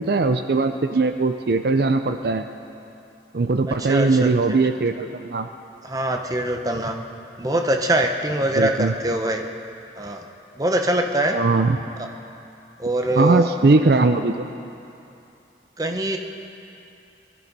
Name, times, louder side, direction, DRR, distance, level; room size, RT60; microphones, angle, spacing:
voice 1, 0.0-2.5 3.3-5.5 8.6-8.9 11.3-11.8 13.2-14.4, right 3 dB, 60° right, 8 dB, 0.5 m, -20 dB
voice 2, 3.7-4.6 5.8-7.0 7.4-9.5 10.0-10.2 10.6-11.4 12.0-12.1 12.8-13.5 15.8-16.2, right 1 dB, 20° right, 4 dB, 0.9 m, -23 dB
20.5 x 13.0 x 5.4 m, 2.7 s
head